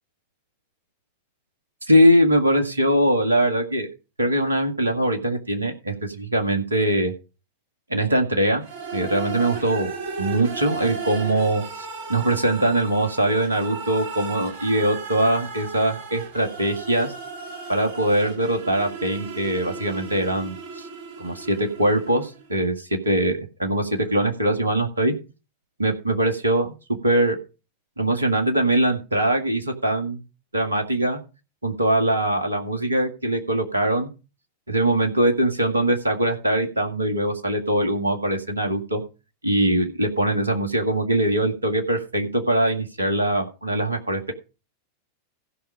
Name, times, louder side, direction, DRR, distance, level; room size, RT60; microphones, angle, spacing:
voice 1, 1.9-3.9 4.2-7.1 7.9-8.6 8.9-9.9 10.2-17.1 17.7-20.9 21.2-25.1 25.8-26.7 27.0-27.4 28.0-30.2 30.5-31.2 31.6-34.1 34.7-39.0 39.4-44.3, right 1 dB, 80° right, 3 dB, 2.0 m, -22 dB
sound 1, 8.6-22.5, right 5 dB, 50° right, 3.0 m, -35 dB
15.5 x 5.6 x 5.1 m, 0.31 s
figure-of-eight pair, 90°, 0 cm